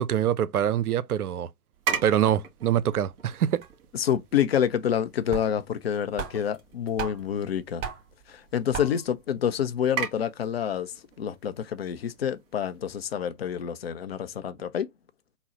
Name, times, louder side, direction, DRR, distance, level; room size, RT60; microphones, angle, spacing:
voice 1, 0.0-1.5 2.0-3.6, right 10 dB, 75° right, 0.6 m, -24 dB
sound 1, 1.7-13.7, right 7 dB, 40° right, 2.0 m, -40 dB
sound 2, 3.4-3.5 3.6-3.8 4.9-5.0 5.3-5.8 6.2-7.4 7.8-8.2 8.7-9.2, right 7 dB, 20° right, 1.5 m, -36 dB
voice 2, 3.9-7.8 8.3-14.9, left 9 dB, 45° left, 0.5 m, -28 dB
3.8 x 2.0 x 4.0 m
figure-of-eight pair, 130°, 44 cm